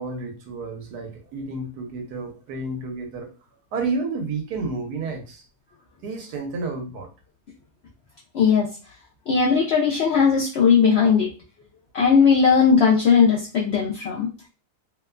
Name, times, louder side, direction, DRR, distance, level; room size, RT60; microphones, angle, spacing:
voice 1, 0.0-3.3 3.7-5.4 6.0-7.1, right 3 dB, 90° right, 3 dB, 1.2 m, -30 dB
voice 2, 8.3-8.7 9.3-11.3 11.9-14.3, left 6 dB, 80° left, -2 dB, 0.5 m, -18 dB
2.9 x 2.1 x 2.3 m, 0.34 s
omnidirectional pair, 1.7 m